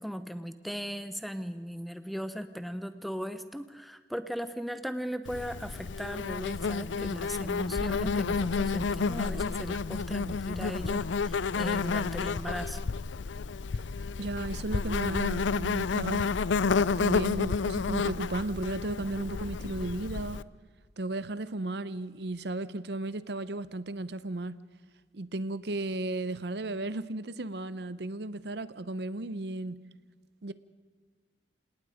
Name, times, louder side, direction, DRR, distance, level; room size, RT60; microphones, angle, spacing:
voice 1, 0.0-12.8, equal, ahead, 0.8 m, -37 dB
Insect, 5.3-20.4, left 5 dB, 85° left, 0.5 m, -30 dB
voice 2, 14.2-16.3 16.8-20.4 21.0-24.5 25.1-29.8 30.4-30.5, right 2 dB, 65° right, 0.7 m, -34 dB
27.5 x 18.5 x 5.0 m
head